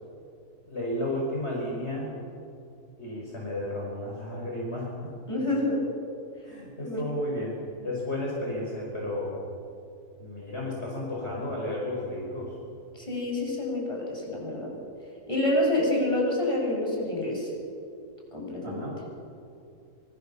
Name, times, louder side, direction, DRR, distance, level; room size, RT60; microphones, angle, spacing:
voice 1, 0.7-2.1 3.0-5.1 6.4-9.3 10.2-12.6 18.6-19.0, left 1 dB, 40° left, -3 dB, 5.6 m, -33 dB
voice 2, 5.3-5.8 6.8-7.0 12.9-14.7 15.3-17.5 18.3-18.8, left 1 dB, 20° left, -2 dB, 7.4 m, -27 dB
27.0 x 26.5 x 7.1 m, 2.5 s
omnidirectional pair, 1.7 m